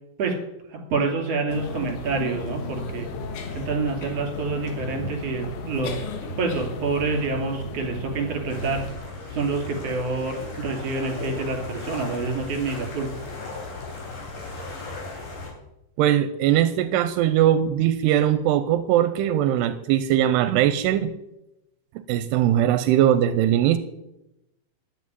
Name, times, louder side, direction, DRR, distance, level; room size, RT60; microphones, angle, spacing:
voice 1, 0.7-3.1 3.5-5.9 6.4-8.8 9.3-13.1, right 4 dB, 40° right, 1 dB, 3.6 m, -27 dB
sound 1, 1.5-8.9, left 2 dB, 70° left, 3.3 m, -34 dB
sound 2, 8.5-15.5, left 3 dB, 55° left, 4.9 m, -36 dB
voice 2, 16.0-21.1 22.1-23.8, right 11 dB, 85° right, 11 dB, 2.7 m, -20 dB
11.0 x 8.4 x 9.3 m, 0.91 s
omnidirectional pair, 4.8 m